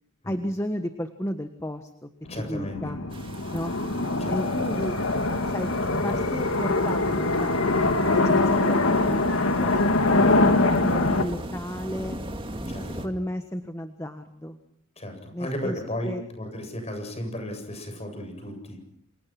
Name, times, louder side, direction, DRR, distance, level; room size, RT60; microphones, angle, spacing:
voice 1, 0.2-2.1 2.4-3.0 3.5-3.7 4.3-4.9 5.5-9.2 9.6-9.8 10.2-12.2 12.8-14.6 15.3-16.2, equal, 15° left, 7 dB, 1.5 m, -33 dB
sound 1, 2.3-11.2, left 2 dB, 80° left, 2.4 m, -23 dB
voice 2, 2.3-2.8 4.2-4.6 12.7-13.1 15.0-18.8, left 1 dB, 30° left, 6 dB, 8.0 m, -34 dB
sound 2, 3.1-13.1, right 1 dB, 25° right, 2.3 m, -40 dB
28.5 x 28.0 x 6.1 m, 0.67 s
head